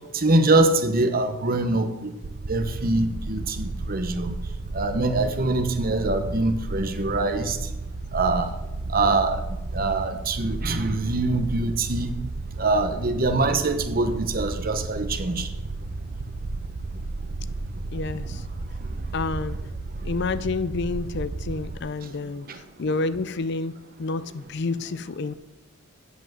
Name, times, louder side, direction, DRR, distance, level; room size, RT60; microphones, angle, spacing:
voice 1, 0.1-2.1 2.5-4.3 4.7-7.6 8.1-8.5 8.9-9.4 9.7-12.1 12.6-15.5, right 2 dB, 45° right, 1.0 m, -23 dB
sound 1, 2.2-21.8, right 2 dB, 70° right, 0.6 m, -33 dB
voice 2, 17.9-18.4 19.1-19.6 20.0-22.5 22.8-25.3, left 3 dB, 55° left, 0.5 m, -29 dB
8.3 x 7.7 x 7.7 m
head